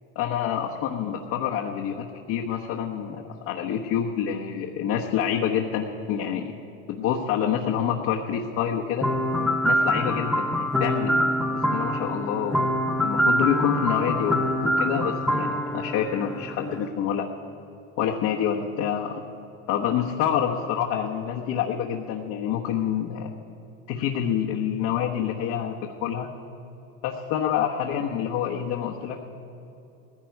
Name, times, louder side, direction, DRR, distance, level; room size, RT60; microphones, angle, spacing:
voice 1, 0.2-6.5 6.9-9.1 9.6-12.7 13.0-17.3 18.0-19.2 19.7-23.3 23.9-25.7 26.0-26.3 27.0-29.2, left 8 dB, 50° left, -1 dB, 1.2 m, -27 dB
sound 1, 9.0-16.9, equal, ahead, 0.8 m, -25 dB
19.0 x 15.5 x 4.6 m, 2.8 s
supercardioid pair, 125°, 38 cm